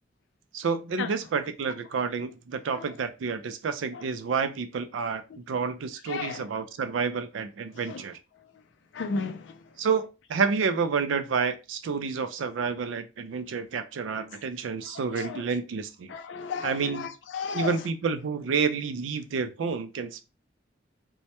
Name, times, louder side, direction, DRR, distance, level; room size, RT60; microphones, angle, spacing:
voice 1, 0.5-8.2 9.8-16.1 16.6-17.1 17.5-20.2, right 5 dB, 90° right, 0.4 m, -29 dB
voice 2, 6.1-6.5 7.9-8.0 8.9-9.6 14.9-15.4 16.1-17.8, left 5 dB, 75° left, 0.4 m, -34 dB
2.2 x 2.1 x 2.8 m
head